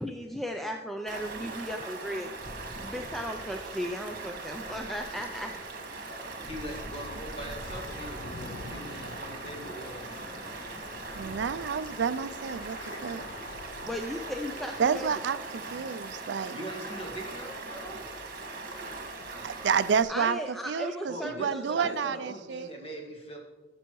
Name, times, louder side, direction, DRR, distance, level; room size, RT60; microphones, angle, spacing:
voice 1, 0.0-2.3 2.8-5.5 13.8-15.1 20.1-22.2, equal, ahead, 3 dB, 0.4 m, -36 dB
Stream, 1.1-20.0, right 3 dB, 50° right, 1.5 m, -40 dB
voice 2, 6.4-10.6 12.7-13.5 16.5-18.0 21.1-23.4, right 1 dB, 35° left, -1 dB, 1.9 m, -42 dB
Thunder / Rain, 7.6-15.0, left 4 dB, 65° left, 0.4 m, -47 dB
voice 3, 11.1-13.2 14.8-16.6 19.4-20.4 20.7-22.7, right 6 dB, 80° right, 15 dB, 0.4 m, -29 dB
15.0 x 6.9 x 3.1 m, 1.3 s
head